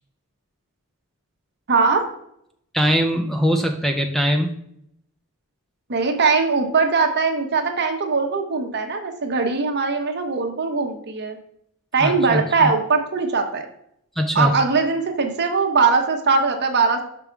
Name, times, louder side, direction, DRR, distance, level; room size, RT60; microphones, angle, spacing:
voice 1, 1.7-2.1 5.9-11.4 11.9-13.6 14.3-17.0, right 4 dB, 50° right, 5 dB, 1.0 m, -20 dB
voice 2, 2.7-4.6 12.0-12.7 14.2-14.5, equal, ahead, 5 dB, 0.5 m, -21 dB
6.1 x 5.2 x 4.6 m, 0.72 s
head